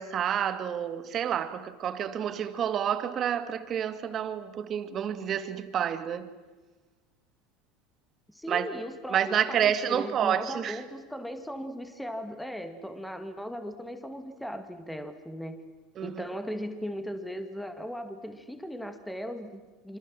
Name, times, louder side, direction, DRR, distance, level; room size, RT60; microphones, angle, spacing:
voice 1, 0.0-6.3 8.5-8.7 9.1-10.8 16.0-16.2, right 9 dB, 40° right, 2.1 m, -29 dB
voice 2, 8.3-15.6 16.0-20.0, equal, 5° left, 2.2 m, -38 dB
27.0 x 25.5 x 7.7 m
supercardioid pair, 120°, 0 cm